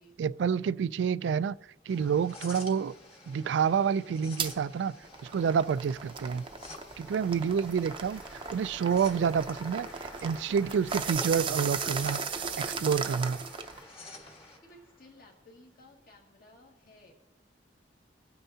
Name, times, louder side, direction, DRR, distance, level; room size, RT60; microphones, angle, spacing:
voice 1, 0.2-1.6 1.9-2.9 3.3-4.9 5.2-6.4 7.0-8.2 8.5-12.2 12.6-13.4, right 7 dB, 75° right, 0.3 m, -28 dB
sound 1, 1.9-14.6, left 2 dB, 35° left, 1.5 m, -50 dB
sound 2, 4.4-4.5 5.0-13.8, right 5 dB, 30° right, 0.6 m, -36 dB
Applause, 6.9-15.9, left 1 dB, 20° left, 1.2 m, -52 dB
voice 2, 7.2-7.6 14.4-17.1, left 1 dB, 55° left, 2.0 m, -57 dB
22.5 x 9.0 x 2.8 m
head